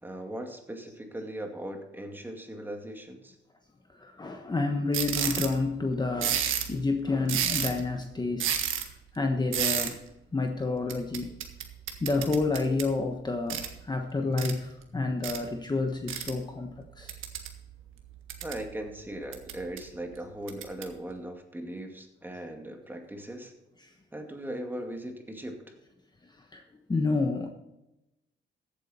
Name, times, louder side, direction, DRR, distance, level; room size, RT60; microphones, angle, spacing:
voice 1, 0.0-3.4 18.4-23.5 24.1-25.6, right 1 dB, 10° right, 3 dB, 2.3 m, -39 dB
voice 2, 4.0-8.5 9.1-10.0 10.3-11.4 12.0-17.2 23.8-23.9 26.5-26.6 26.9-27.5, left 3 dB, 20° left, 3 dB, 1.2 m, -29 dB
sound 1, 4.9-5.6 6.2-6.7 7.2-7.9 8.4-8.8 9.5-9.9 10.9-12.9 13.5-13.7 14.4-14.5 15.2-15.4 16.1-16.3 17.1-17.5 18.0-18.6 19.3-19.8 20.5-20.8, right 9 dB, 85° right, 1.7 m, -30 dB
15.0 x 8.6 x 4.3 m, 0.95 s
cardioid pair, 90°, 20 cm